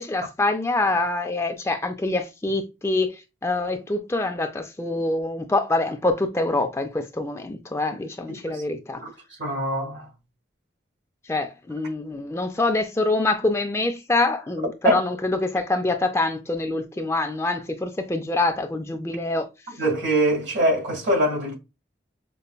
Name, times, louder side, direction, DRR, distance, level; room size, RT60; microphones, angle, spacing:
voice 1, 0.0-9.0 11.3-19.5, left 2 dB, 15° left, 0.3 m, -25 dB
voice 2, 8.3-8.6 9.0-9.1 9.4-10.1 14.8-15.0 19.8-21.5, right 1 dB, 75° right, 1.8 m, -23 dB
5.3 x 2.1 x 2.3 m
head